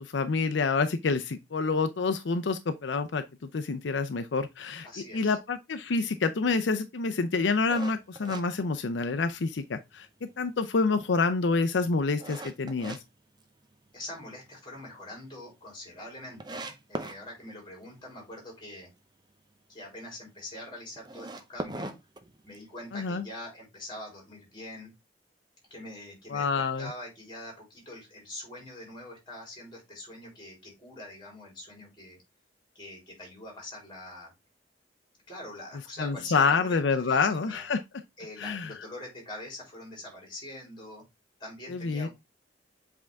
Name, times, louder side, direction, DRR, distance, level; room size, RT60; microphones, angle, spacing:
voice 1, 0.0-3.2 3.5-4.9 5.1-10.1 10.4-13.0 22.9-23.2 26.3-26.9 36.0-37.8 38.4-38.7 41.7-42.1, left 4 dB, 80° left, 0.5 m, -27 dB
voice 2, 4.8-5.4 13.9-18.9 19.7-21.9 22.4-24.9 25.7-32.2 32.7-34.3 35.3-36.8 37.0-37.6 38.2-41.0 41.4-42.1, left 1 dB, 25° left, 3.9 m, -44 dB
sound 1, 7.7-9.4 9.8-9.9 10.5-13.0 13.4-14.1 14.5-14.6 14.9-15.0 15.2-15.3 15.9-16.0 16.4-17.2 20.9-22.8, right 2 dB, 25° right, 0.6 m, -39 dB
7.6 x 3.5 x 3.5 m
head